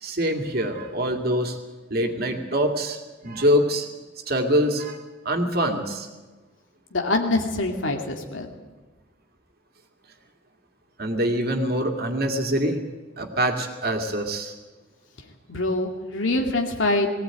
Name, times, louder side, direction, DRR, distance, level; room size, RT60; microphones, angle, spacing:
voice 1, 0.0-1.6 1.9-3.9 4.3-6.1 11.0-12.8 13.2-14.5, equal, 55° right, 4 dB, 2.3 m, -24 dB
voice 2, 6.9-8.5 15.5-17.1, left 2 dB, 90° left, 3 dB, 2.3 m, -24 dB
19.5 x 16.5 x 9.0 m, 1.3 s
head